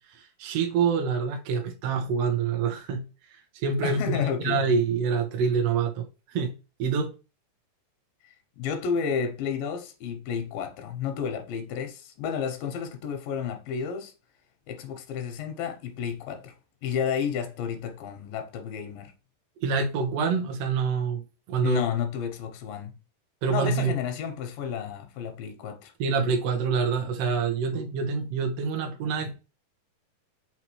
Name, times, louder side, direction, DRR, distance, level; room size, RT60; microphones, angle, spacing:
voice 1, 0.4-3.1 3.6-7.1 19.6-21.2 21.5-21.8 23.4-23.9 26.0-29.4, right 5 dB, 70° right, 1.4 m, -26 dB
voice 2, 3.8-4.6 8.2-14.1 14.7-16.5 16.8-19.1 21.6-23.0 23.5-25.9, left 7 dB, 90° left, 2.5 m, -31 dB
5.9 x 2.9 x 3.0 m
omnidirectional pair, 4.0 m